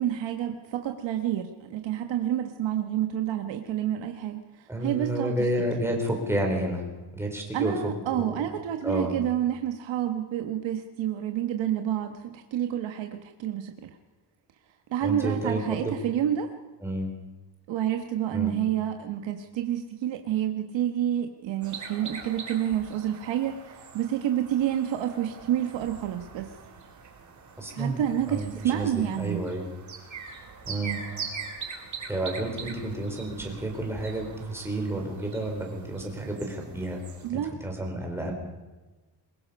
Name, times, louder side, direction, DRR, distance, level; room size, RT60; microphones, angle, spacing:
voice 1, 0.0-5.3 7.5-13.9 14.9-16.5 17.7-26.5 27.7-29.4 37.2-37.5, right 11 dB, 75° right, 5 dB, 1.4 m, -29 dB
voice 2, 4.7-6.9 7.1-7.7 8.1-8.3 8.8-9.2 15.0-15.9 16.8-17.1 18.3-18.5 27.6-28.0 28.3-29.7 30.7-31.0 32.1-37.0 37.3-38.3, right 1 dB, 5° right, 1 dB, 3.8 m, -30 dB
sound 1, 21.6-37.3, right 5 dB, 40° right, 3.2 m, -42 dB
23.0 x 21.0 x 5.4 m, 1.2 s
cardioid pair, 170°, 46 cm